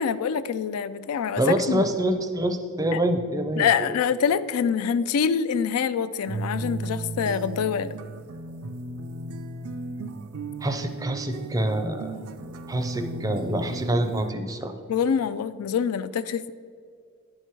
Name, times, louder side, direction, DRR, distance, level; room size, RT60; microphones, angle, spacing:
voice 1, 0.0-1.4 1.7-1.8 2.9-3.0 3.6-7.9 14.9-16.5, left 7 dB, 85° left, 14 dB, 0.3 m, -25 dB
voice 2, 1.4-3.9 10.6-12.2 12.7-14.7, right 1 dB, 15° right, 7 dB, 0.4 m, -26 dB
sound 1, 6.3-14.3, right 2 dB, 75° right, 0.4 m, -35 dB
9.9 x 4.7 x 4.4 m, 2.2 s
head